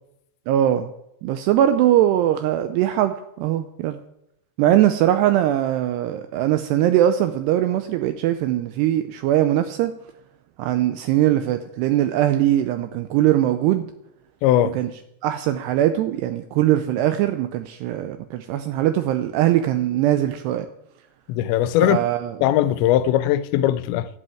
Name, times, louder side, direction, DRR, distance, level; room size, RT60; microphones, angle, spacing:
voice 1, 0.5-0.9 1.2-4.0 4.6-9.9 10.6-13.9 14.7-14.9 15.2-20.7 21.8-22.4, right 12 dB, 80° right, 2.6 m, -21 dB
voice 2, 14.4-14.7 21.3-22.0 22.4-24.1, left 12 dB, 85° left, 2.9 m, -19 dB
11.5 x 8.1 x 9.1 m
omnidirectional pair, 5.2 m